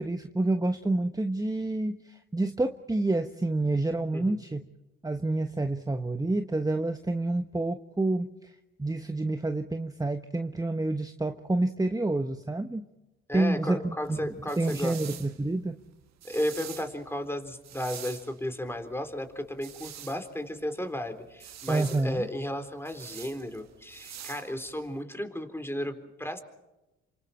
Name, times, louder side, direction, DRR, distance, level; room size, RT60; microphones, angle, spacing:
voice 1, 0.0-4.7 5.0-8.5 8.8-12.9 13.3-15.8 21.7-22.3, right 2 dB, 10° right, 7 dB, 1.3 m, -28 dB
voice 2, 13.3-15.0 16.2-26.4, left 1 dB, 10° left, 6 dB, 3.9 m, -34 dB
sound 1, 14.0-25.0, right 10 dB, 65° right, 1.6 m, -47 dB
28.5 x 26.0 x 4.4 m, 1.0 s
supercardioid pair, 55°, 29 cm